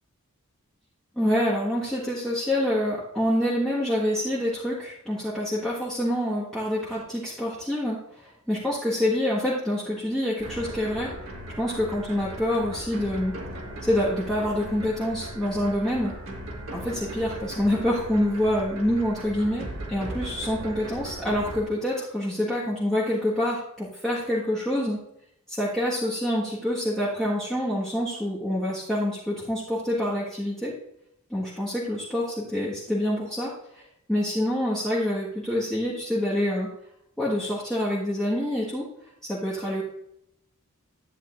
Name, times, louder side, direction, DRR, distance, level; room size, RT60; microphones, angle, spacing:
voice 1, 1.1-11.1 11.6-13.3 13.8-16.1 16.7-25.0 25.5-30.7 31.3-33.8 34.1-36.7 37.2-38.9 39.2-39.8, left 1 dB, 5° left, -9 dB, 1.6 m, -26 dB
sound 1, 10.4-21.6, right 1 dB, 65° right, 1.8 m, -38 dB
12.0 x 9.4 x 2.6 m, 0.80 s
head